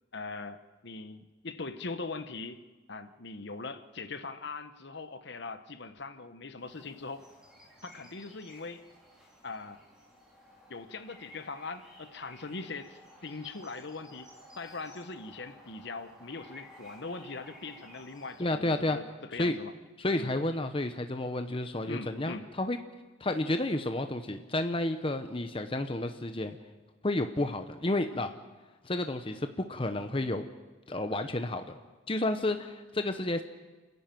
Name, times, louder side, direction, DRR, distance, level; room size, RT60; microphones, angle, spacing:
voice 1, 0.1-2.6 2.9-7.3 7.8-8.8 9.4-9.8 10.7-14.3 14.6-19.7 20.2-20.3 21.9-22.5, left 3 dB, 55° left, 11 dB, 1.0 m, -41 dB
sound 1, 6.6-18.4, equal, 5° right, 3.9 m, -54 dB
voice 2, 18.4-19.0 19.3-19.6 20.0-22.8 23.2-26.6 27.0-28.3 28.8-30.4 30.9-31.7 32.1-33.5, left 2 dB, 25° left, 8 dB, 0.8 m, -31 dB
29.0 x 11.0 x 9.1 m, 1.3 s
head